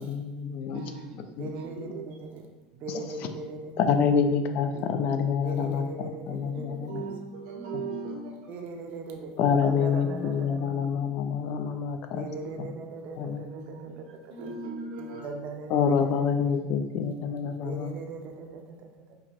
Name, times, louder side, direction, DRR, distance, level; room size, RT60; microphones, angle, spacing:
voice 1, 0.0-0.8 1.4-1.5 2.9-3.1 3.8-7.0 9.4-12.3 12.6-12.7 13.2-13.4 15.7-17.9, left 6 dB, 50° left, 7 dB, 0.3 m, -27 dB
voice 2, 0.7-1.2 1.5-2.0 6.5-8.3 10.0-10.7 13.5-14.0 14.3-15.3 16.5-16.6, right 3 dB, 85° right, -2 dB, 1.1 m, -38 dB
voice 3, 1.3-2.4 2.7-4.1 5.4-6.9 8.5-10.9 12.0-14.5 15.2-16.5 17.6-19.2, right 4 dB, 45° right, 3 dB, 0.5 m, -40 dB
4.7 x 2.5 x 2.5 m, 1.0 s
supercardioid pair, 125°, 4 cm